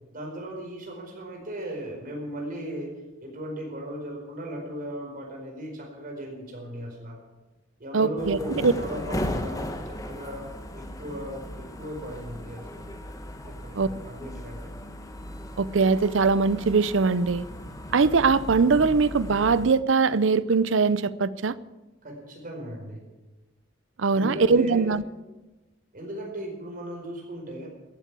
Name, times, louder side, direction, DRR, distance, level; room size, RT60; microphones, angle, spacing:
voice 1, 0.1-3.0 3.2-7.2 7.8-12.8 13.4-14.7 22.0-23.0 24.1-24.9 25.9-27.7, right 1 dB, 45° right, 0 dB, 4.8 m, -37 dB
voice 2, 7.9-8.7 13.7-13.9 15.6-17.4 17.9-21.5 24.0-25.0, right 4 dB, 70° right, 17 dB, 0.6 m, -21 dB
sound 1, 8.2-19.7, left 1 dB, 20° left, 1.3 m, -37 dB
15.0 x 8.4 x 8.2 m, 1.1 s
head